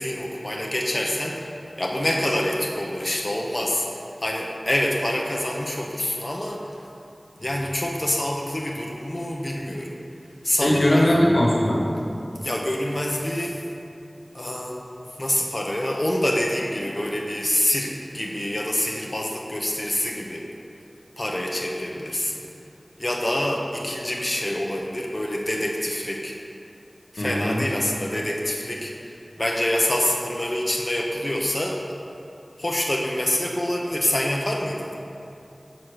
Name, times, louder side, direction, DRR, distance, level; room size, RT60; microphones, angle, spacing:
voice 1, 0.0-1.5 1.8-6.6 7.4-10.0 10.4-11.2 12.4-13.6 14.3-20.4 21.2-22.4 23.0-26.3 27.1-28.9 29.4-31.8 32.6-34.9, left 1 dB, 35° left, -1 dB, 0.7 m, -26 dB
voice 2, 10.6-11.8 27.2-27.6, left 1 dB, 85° left, -3 dB, 1.2 m, -19 dB
5.9 x 4.6 x 6.5 m, 2.7 s
wide cardioid pair, 45°, 0 cm